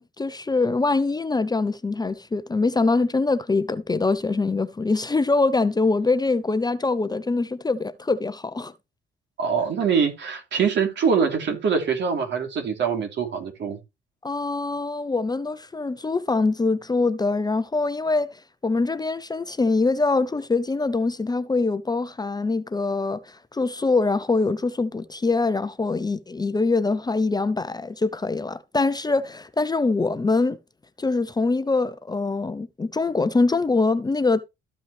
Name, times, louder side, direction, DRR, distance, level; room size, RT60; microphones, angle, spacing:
voice 1, 0.0-8.7 14.2-30.6 31.0-34.4, left 3 dB, 20° left, 0.7 m, -24 dB
voice 2, 9.4-13.8, right 6 dB, 65° right, 3.3 m, -24 dB
13.5 x 5.4 x 3.3 m
cardioid pair, 90°, 20 cm